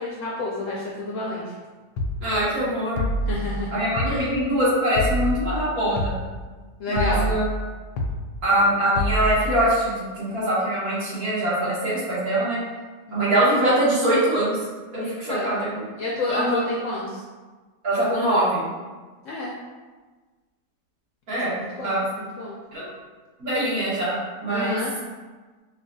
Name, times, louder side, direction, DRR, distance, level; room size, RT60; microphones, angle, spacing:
voice 1, 0.0-1.4 3.3-3.7 4.0-4.3 6.8-7.3 13.1-13.4 15.0-15.6 16.0-17.2 19.2-19.5 21.6-22.6 24.5-24.9, left 2 dB, 70° left, -4 dB, 0.8 m, -30 dB
sound 1, 2.0-2.2 3.0-3.3 4.0-4.2 5.0-5.3 6.0-6.2 7.0-7.3 8.0-8.2 9.0-9.3, equal, 85° left, 1.1 m, -25 dB
voice 2, 2.2-3.1 3.7-6.1 6.9-7.5 8.4-12.6 13.1-14.6 14.9-15.7 16.3-16.6 17.8-18.6 21.3-21.5 21.8-22.0 22.7-22.9 23.4-24.2 24.4-24.8, right 1 dB, 65° right, -9 dB, 1.9 m, -23 dB
5.2 x 2.4 x 2.6 m, 1.3 s
omnidirectional pair, 1.7 m